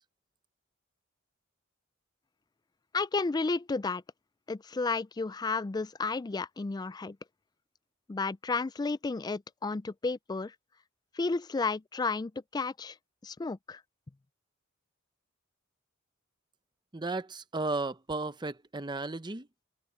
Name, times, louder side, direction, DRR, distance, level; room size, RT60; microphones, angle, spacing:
voice 1, 2.9-4.0 4.5-7.2 8.1-10.5 11.1-13.0 13.2-13.8, left 3 dB, 20° left, 0.3 m, -32 dB
voice 2, 16.9-19.5, right 3 dB, 20° right, 0.8 m, -34 dB
head